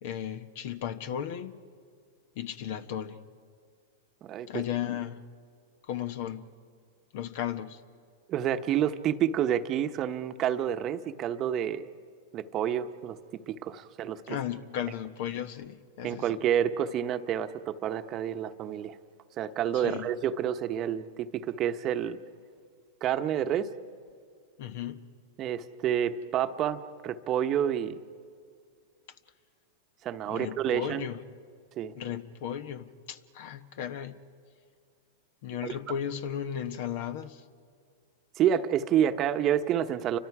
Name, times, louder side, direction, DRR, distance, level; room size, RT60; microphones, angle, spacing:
voice 1, 0.0-1.5 2.4-3.2 4.5-5.2 5.8-6.5 7.1-7.8 14.3-16.3 19.7-20.1 24.6-25.0 30.3-31.2 32.0-34.2 35.4-37.4, left 9 dB, 60° left, 1.3 m, -35 dB
voice 2, 4.2-4.6 8.3-11.8 12.3-13.2 13.5-14.4 16.0-19.0 19.4-22.2 23.0-23.7 25.4-28.0 30.0-31.0 31.8-31.9 35.6-35.8 38.4-40.2, right 10 dB, 35° right, 1.0 m, -29 dB
30.0 x 25.0 x 4.9 m
hypercardioid pair, 115°, 0 cm